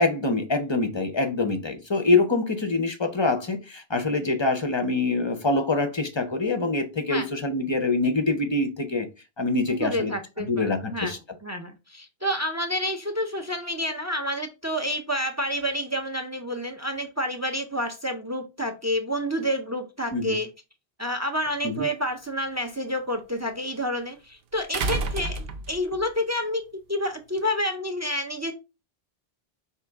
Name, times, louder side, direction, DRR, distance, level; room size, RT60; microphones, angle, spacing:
voice 1, 0.0-9.1 9.4-10.1 10.5-11.2 20.1-20.4 21.6-21.9, left 3 dB, 35° left, 0.5 m, -25 dB
voice 2, 9.7-11.1 11.4-20.5 21.0-28.5, equal, 25° right, 0.3 m, -29 dB
sound 1, 21.5-21.6 24.7-26.0 27.4-27.5, right 3 dB, 70° right, 0.9 m, -29 dB
5.1 x 2.9 x 3.3 m
omnidirectional pair, 1.0 m